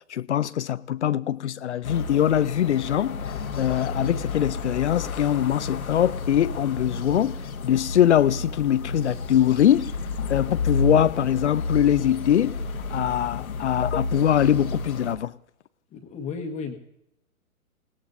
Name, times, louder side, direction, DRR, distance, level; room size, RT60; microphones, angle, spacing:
voice 1, 0.1-3.2 3.5-7.4 7.6-9.9 10.3-12.5 12.9-15.3, left 11 dB, 55° left, 0.7 m, -22 dB
sound 1, 1.8-15.2, left 3 dB, 75° left, 1.4 m, -31 dB
voice 2, 15.9-16.8, left 5 dB, 15° left, 1.4 m, -33 dB
28.0 x 19.0 x 2.7 m
figure-of-eight pair, 125°, 43 cm